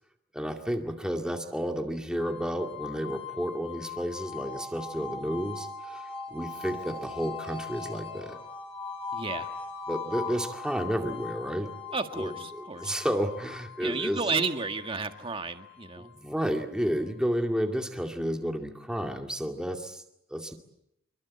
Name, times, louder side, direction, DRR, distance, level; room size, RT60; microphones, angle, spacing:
voice 1, 0.3-8.4 9.9-11.7 12.1-14.2 16.0-20.0 20.3-20.5, equal, 5° right, 3 dB, 2.2 m, -31 dB
sound 1, 2.2-17.1, left 4 dB, 25° left, 4.6 m, -40 dB
voice 2, 9.1-9.5 11.9-12.9 13.8-16.1, right 4 dB, 25° right, 6 dB, 1.8 m, -32 dB
27.0 x 23.5 x 8.6 m, 0.80 s
head